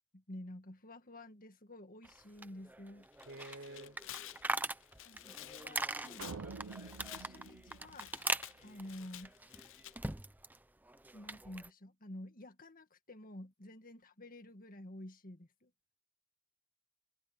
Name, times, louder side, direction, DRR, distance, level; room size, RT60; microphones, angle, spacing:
voice 1, 0.1-3.1 5.0-8.1 8.6-9.3 11.1-15.7, left 1 dB, 40° left, 1.8 m, -51 dB
sound 1, 2.0-10.6 10.9-11.7, right 2 dB, 10° right, 0.7 m, -42 dB
Tearing, 3.1-9.9, left 14 dB, 60° left, 0.6 m, -52 dB
voice 2, 3.3-4.0 6.2-6.6, right 2 dB, 55° right, 4.4 m, -50 dB
sound 2, 6.2-8.7, right 4 dB, 75° right, 0.7 m, -48 dB
head